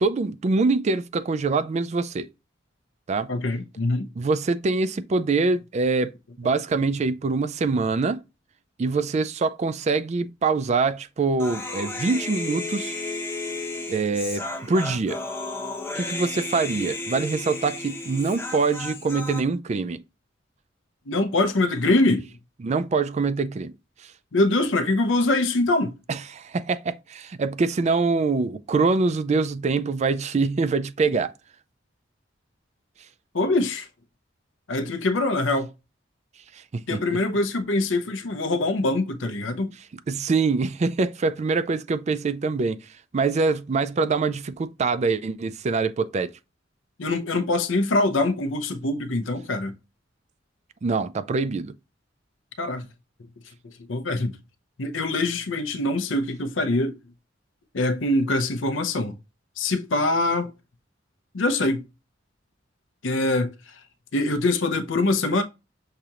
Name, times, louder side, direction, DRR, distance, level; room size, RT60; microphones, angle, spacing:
voice 1, 0.0-2.3 3.1-3.3 4.2-6.1 6.4-8.2 8.8-12.9 13.9-15.2 16.0-20.0 22.6-23.7 26.1-31.3 36.7-37.2 40.1-42.8 43.1-46.3 50.8-51.7, right 4 dB, 35° right, 0.4 m, -24 dB
voice 2, 3.3-4.1 21.1-22.2 24.3-25.9 33.3-33.9 34.7-35.7 36.9-39.7 47.0-49.8 52.6-52.9 53.9-54.4 54.8-57.0 57.7-59.2 59.6-60.5 61.3-61.9 63.0-63.5 64.1-65.4, left 2 dB, 90° left, 0.7 m, -23 dB
Human voice, 11.4-19.4, left 2 dB, 10° left, 0.8 m, -33 dB
6.6 x 2.9 x 2.4 m
head